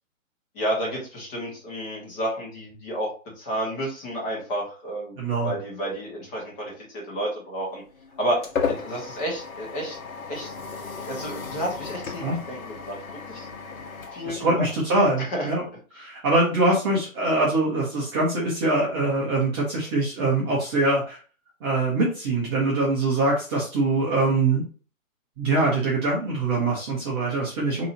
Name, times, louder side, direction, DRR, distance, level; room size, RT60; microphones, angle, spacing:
voice 1, 0.5-3.1 3.4-7.8 8.2-10.0 10.3-10.5 11.1-13.0 13.3-13.5 14.1-14.7 15.3-15.5, right 1 dB, 20° left, -2 dB, 1.3 m, -31 dB
voice 2, 5.2-5.5 12.2-12.4 14.2-15.6 15.9-21.2 21.6-24.6 25.4-27.9, right 2 dB, 20° right, -5 dB, 0.8 m, -23 dB
sound 1, 7.7-15.1, left 5 dB, 70° left, 1.2 m, -34 dB
4.7 x 2.9 x 2.7 m, 0.38 s
hypercardioid pair, 155°, 42 cm